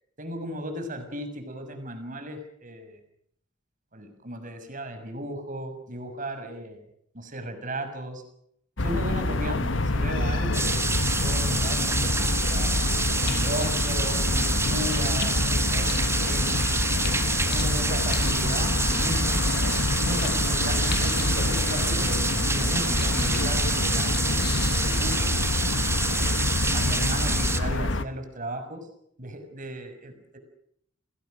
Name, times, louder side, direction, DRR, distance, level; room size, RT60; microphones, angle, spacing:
voice 1, 0.2-3.0 3.9-6.8 7.1-8.2 8.8-10.7 11.0-12.8 13.2-16.8 17.5-19.4 20.0-25.4 26.1-28.9 29.2-30.4, right 1 dB, 45° right, 7 dB, 6.1 m, -36 dB
sound 1, 8.8-28.0, left 2 dB, 80° left, 1.4 m, -26 dB
sound 2, 10.2-25.0, left 7 dB, 55° left, 2.3 m, -44 dB
sound 3, 10.5-27.6, right 3 dB, 15° right, 1.9 m, -28 dB
30.0 x 20.5 x 6.6 m, 0.70 s
head